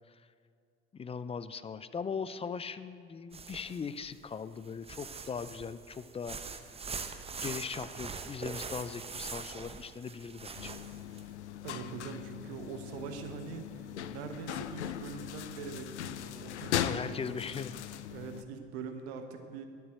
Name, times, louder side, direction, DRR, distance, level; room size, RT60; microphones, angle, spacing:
voice 1, 0.9-6.6 7.4-10.7 16.8-17.7, left 6 dB, 20° left, 14 dB, 0.4 m, -39 dB
sound 1, 3.3-4.1 4.6-11.2, right 5 dB, 20° right, 0.8 m, -42 dB
sound 2, 10.6-18.4, left 11 dB, 85° left, 0.5 m, -39 dB
voice 2, 11.6-13.7 14.1-17.5 18.1-19.7, right 6 dB, 70° right, 6 dB, 1.3 m, -43 dB
11.5 x 7.0 x 7.7 m, 2.2 s
hypercardioid pair, 65°, 33 cm